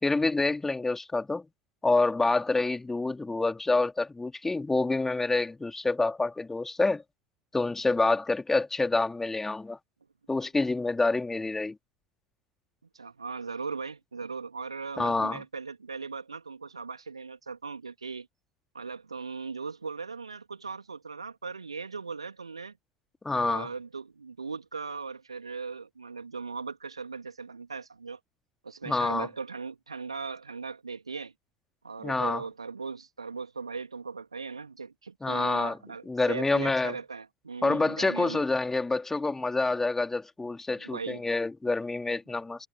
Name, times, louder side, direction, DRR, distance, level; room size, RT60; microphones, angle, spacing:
voice 1, 0.0-1.5 1.8-7.0 7.5-9.8 10.3-11.8 15.0-15.4 23.2-23.7 28.9-29.3 32.0-32.4 35.2-35.8 36.1-36.9 37.6-42.7, left 3 dB, 10° left, 3.1 m, -27 dB
voice 2, 12.9-18.3 18.7-22.8 23.3-28.2 28.6-31.3 31.8-38.4 40.8-41.2, right 4 dB, 80° right, 2.9 m, -38 dB
figure-of-eight pair, 70°, 3 cm